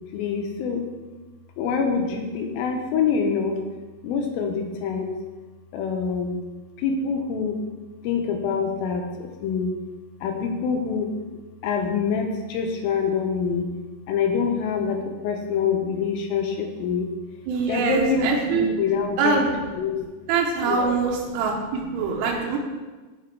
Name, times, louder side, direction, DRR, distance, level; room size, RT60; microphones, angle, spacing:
voice 1, 0.1-0.9 1.6-3.6 4.0-5.2 5.7-6.4 6.8-7.6 8.0-9.8 10.2-11.1 11.6-13.7 14.1-17.1 17.7-19.4 19.7-20.1 20.6-21.0 21.3-22.6, left 5 dB, 80° left, 4 dB, 2.2 m, -26 dB
voice 2, 17.5-18.7 19.2-19.5 20.3-22.6, right 5 dB, 90° right, 0 dB, 2.8 m, -24 dB
6.9 x 5.1 x 4.5 m, 1.3 s
omnidirectional pair, 4.7 m